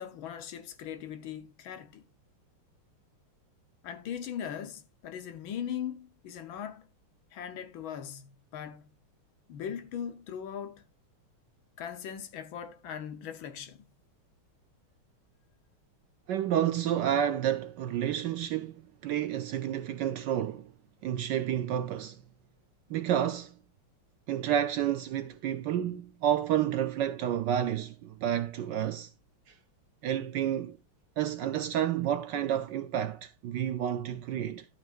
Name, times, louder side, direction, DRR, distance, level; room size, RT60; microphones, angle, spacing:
voice 1, 0.0-2.0 3.8-6.9 7.3-8.9 9.5-10.8 11.8-13.9, left 9 dB, 70° left, 1.6 m, -39 dB
voice 2, 16.3-20.7 21.0-22.2 22.9-23.6 24.3-29.1 29.5-29.6 30.0-30.8 31.2-34.7, right 10 dB, 70° right, 1.1 m, -30 dB
12.5 x 8.0 x 2.4 m
omnidirectional pair, 2.4 m